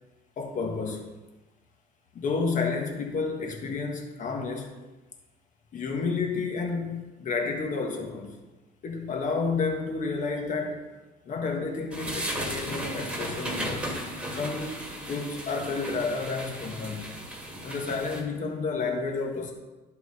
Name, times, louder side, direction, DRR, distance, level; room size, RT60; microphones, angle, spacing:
voice 1, 0.4-1.1 2.1-4.7 5.7-8.4 8.8-10.8 11.2-13.9 14.3-17.1 17.6-19.5, left 4 dB, 50° left, 2 dB, 1.5 m, -31 dB
sound 1, 11.9-18.2, right 1 dB, 5° right, 2.1 m, -35 dB
11.5 x 4.6 x 4.2 m, 1.1 s
cardioid pair, 110°, 17 cm